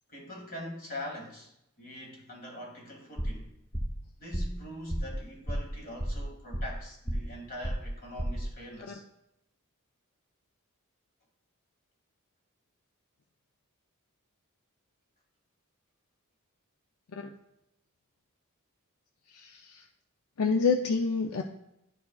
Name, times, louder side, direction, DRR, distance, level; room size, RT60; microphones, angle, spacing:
voice 1, 0.1-1.5 1.8-3.5 4.2-9.0, left 1 dB, 45° left, 0 dB, 2.0 m, -43 dB
sound 1, 3.2-3.5 3.7-4.0 4.3-4.6 4.9-5.2 5.5-5.7 6.0-6.8 7.1-7.4 7.6-8.5, equal, 15° left, 0.8 m, -33 dB
voice 2, 19.3-19.8 20.4-21.4, left 5 dB, 80° left, 4 dB, 0.5 m, -28 dB
11.5 x 4.7 x 2.3 m, 0.82 s
head